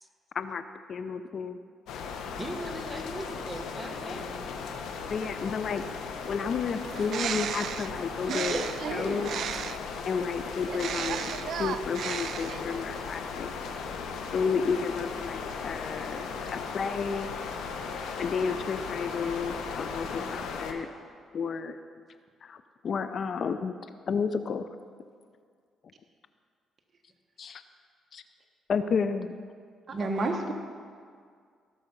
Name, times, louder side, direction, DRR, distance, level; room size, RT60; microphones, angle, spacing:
voice 1, 0.3-1.6 2.8-3.2 3.7-4.5 5.1-6.0 6.2-8.6 8.9-9.3 9.6-9.7 10.0-11.3 11.6-13.5 14.3-17.3 18.2-20.9 21.3-21.8 22.4-23.7 24.1-24.7 27.4-27.6 28.1-28.2 28.7-29.3 30.5-30.6, left 5 dB, 55° left, 10 dB, 0.6 m, -32 dB
sound 1, 1.9-20.7, left 5 dB, 85° left, 1.1 m, -37 dB
voice 2, 2.4-4.4 20.0-20.5, right 1 dB, 10° right, 4 dB, 1.4 m, -40 dB
Bird, 6.8-10.0 10.7-12.8, right 9 dB, 70° right, 0.3 m, -35 dB
voice 3, 8.3-9.2 29.9-30.5, right 2 dB, 35° right, 2 dB, 1.3 m, -31 dB
17.5 x 6.9 x 5.4 m, 2.1 s
cardioid pair, 90°, 0 cm